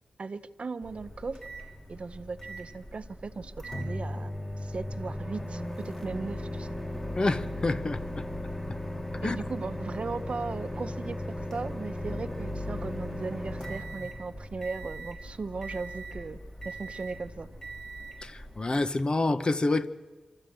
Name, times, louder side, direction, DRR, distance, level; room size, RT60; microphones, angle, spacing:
voice 1, 0.2-1.4 1.9-4.3 4.6-6.8 9.2-16.4 16.6-17.5, right 4 dB, 55° right, 0.8 m, -37 dB
Microwave oven, 0.8-18.8, left 1 dB, 15° left, 2.2 m, -37 dB
voice 2, 7.2-8.2 9.2-9.4 18.2-19.9, left 2 dB, 40° left, 0.9 m, -28 dB
26.0 x 13.5 x 7.8 m
wide cardioid pair, 75°, 2 cm